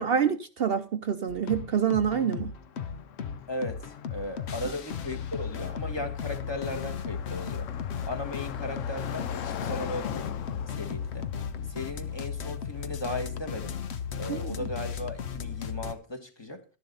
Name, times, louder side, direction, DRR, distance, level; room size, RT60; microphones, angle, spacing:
voice 1, 0.0-2.5 14.3-14.6, right 8 dB, 55° right, 0.8 m, -27 dB
sound 1, 1.3-15.9, left 7 dB, 60° left, 1.0 m, -35 dB
Car passing by, 2.2-14.3, left 9 dB, 90° left, 1.1 m, -43 dB
voice 2, 3.5-7.7 8.0-10.4 10.7-11.3 11.7-13.8 14.2-16.6, left 2 dB, 20° left, 1.4 m, -37 dB
12.0 x 10.5 x 4.0 m
omnidirectional pair, 1.3 m